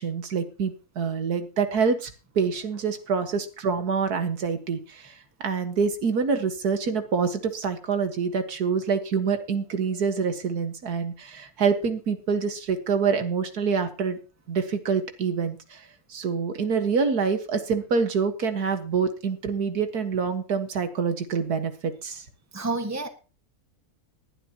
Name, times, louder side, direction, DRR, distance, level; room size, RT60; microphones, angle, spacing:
voice 1, 0.0-2.1 2.4-5.1 5.4-14.2 14.5-15.8 16.1-22.2, right 5 dB, 90° right, 8 dB, 2.1 m, -26 dB
voice 2, 22.5-23.1, right 3 dB, 10° right, 6 dB, 1.6 m, -29 dB
19.5 x 11.5 x 2.9 m, 0.34 s
omnidirectional pair, 1.6 m